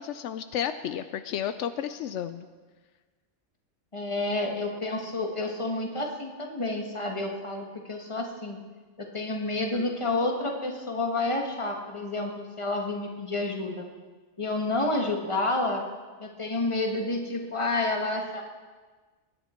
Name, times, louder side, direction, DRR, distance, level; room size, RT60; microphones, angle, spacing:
voice 1, 0.0-2.5, left 9 dB, 80° left, 10 dB, 0.9 m, -32 dB
voice 2, 3.9-8.6 9.0-13.9 14.4-15.8 16.2-18.4, left 2 dB, 25° left, 2 dB, 1.6 m, -29 dB
21.5 x 10.0 x 4.4 m, 1.4 s
omnidirectional pair, 1.2 m